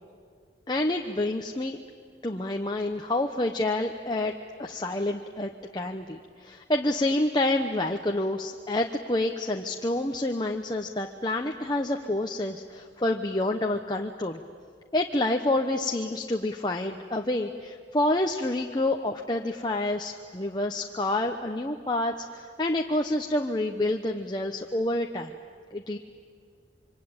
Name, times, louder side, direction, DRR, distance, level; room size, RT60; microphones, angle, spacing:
voice 1, 0.7-1.8 2.2-4.3 4.6-14.4 14.9-25.3 25.7-26.0, left 1 dB, 25° left, 3 dB, 0.9 m, -28 dB
26.5 x 24.5 x 8.9 m, 2.1 s
head